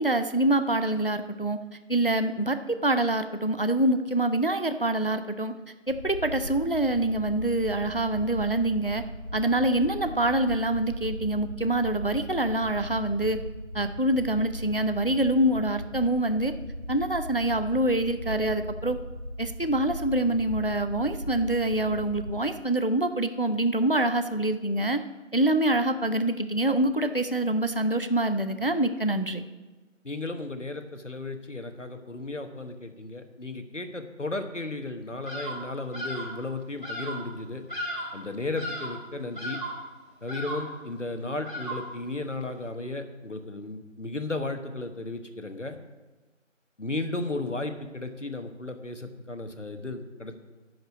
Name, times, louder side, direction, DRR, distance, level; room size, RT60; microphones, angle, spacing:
voice 1, 0.0-1.6 1.9-5.5 5.9-9.0 9.3-13.4 13.7-16.6 16.9-19.0 19.4-25.0 25.3-29.4, right 1 dB, 45° left, 10 dB, 0.5 m, -25 dB
sound 1, 5.9-22.4, equal, 65° right, 2.9 m, -38 dB
voice 2, 30.0-37.6 38.1-39.6 40.2-45.8 46.8-50.4, left 2 dB, 65° left, 7 dB, 1.2 m, -34 dB
Bird vocalization bird call bird song, 35.3-35.7 35.9-36.4 36.8-37.3 37.7-38.2 38.5-39.0 39.4-39.9 40.3-40.8 41.4-42.0, equal, 40° right, 3.9 m, -35 dB
7.8 x 6.8 x 8.0 m, 1.2 s
figure-of-eight pair, 180°, 39 cm